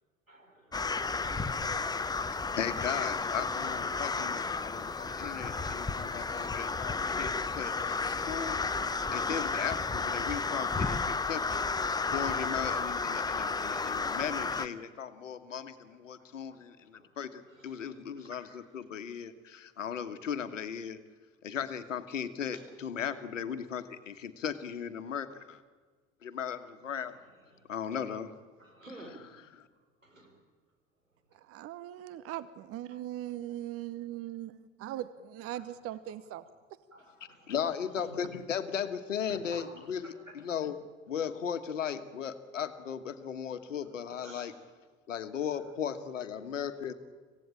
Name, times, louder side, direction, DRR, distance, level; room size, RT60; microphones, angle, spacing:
voice 1, 0.3-2.6 16.5-16.6 16.9-17.1 17.4-18.4 22.5-22.6 27.5-27.6 28.6-29.1 30.0-30.3 32.9-33.0 36.9-37.5 37.9-38.3 39.3-39.6 40.0-40.1 43.1-43.2 44.2-44.5, right 1 dB, 85° right, 2 dB, 5.1 m, -53 dB
sound 1, 0.7-14.7, left 4 dB, 10° left, 0.9 m, -32 dB
voice 2, 2.6-8.6 9.1-11.6 12.1-21.0 21.4-25.6 26.2-27.2 27.7-28.3 29.5-29.7 37.5-40.8 41.1-44.5 45.1-46.9, left 8 dB, 75° left, 10 dB, 1.5 m, -37 dB
voice 3, 31.3-36.4, right 13 dB, 35° right, 15 dB, 1.0 m, -40 dB
26.5 x 16.0 x 8.9 m, 1.5 s
figure-of-eight pair, 70°, 39 cm